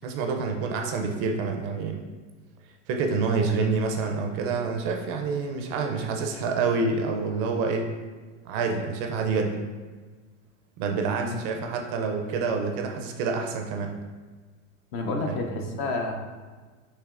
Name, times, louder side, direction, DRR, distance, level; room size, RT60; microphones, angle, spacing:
voice 1, 0.0-2.0 2.9-7.9 8.4-9.6 10.8-13.9 15.2-15.7, right 4 dB, 40° right, 3 dB, 0.4 m, -27 dB
voice 2, 14.9-16.1, left 3 dB, 35° left, 2 dB, 0.5 m, -29 dB
6.4 x 2.9 x 2.4 m, 1.4 s
supercardioid pair, 135°, 39 cm